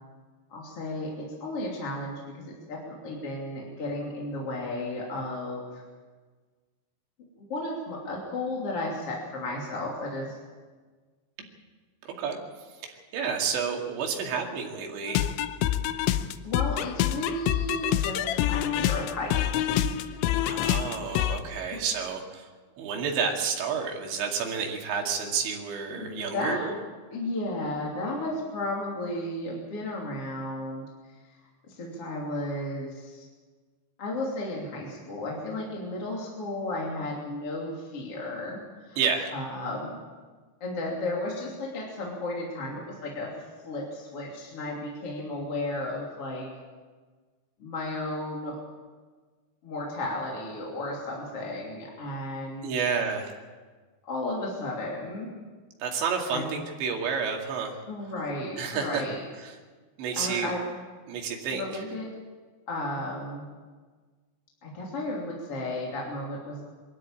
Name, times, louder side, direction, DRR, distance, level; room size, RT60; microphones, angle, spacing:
voice 1, 0.5-2.4 2.7-5.8 7.4-10.4 16.4-19.8 25.9-26.7 27.1-30.8 31.3-31.4 31.7-33.2 34.0-38.6 38.8-39.0 39.3-39.9 40.6-43.3 43.6-46.5 47.6-48.6 49.6-52.7 54.0-55.3 56.3-56.4 57.9-59.2 60.2-60.8 61.5-62.1 62.7-63.4 64.6-66.7, left 1 dB, 35° left, -3 dB, 3.4 m, -34 dB
voice 2, 12.1-12.4 12.7-15.3 20.4-22.5 22.8-26.7 39.0-39.3 52.6-53.4 55.8-57.8 58.6-59.0 59.4-59.6 60.0-60.5 61.1-61.8, right 6 dB, 75° right, 1 dB, 4.6 m, -30 dB
sound 1, 15.1-21.4, left 12 dB, 85° left, 3.1 m, -27 dB
23.5 x 13.0 x 8.8 m, 1.4 s
omnidirectional pair, 5.3 m